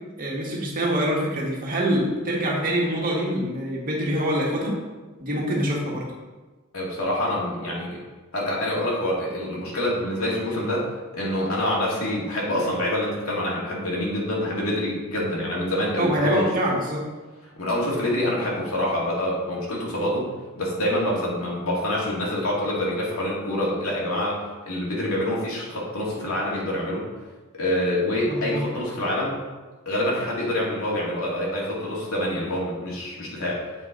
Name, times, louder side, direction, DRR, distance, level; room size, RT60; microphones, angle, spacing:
voice 1, 0.2-4.8 5.2-6.1 16.0-17.0 28.3-28.6, equal, 40° right, -3 dB, 1.6 m, -25 dB
voice 2, 6.7-8.0 8.3-16.5 17.6-20.3 20.6-24.4 24.7-27.1 27.5-29.4 29.9-33.6, left 1 dB, 80° left, -4 dB, 2.1 m, -26 dB
7.5 x 5.1 x 3.9 m, 1.2 s
head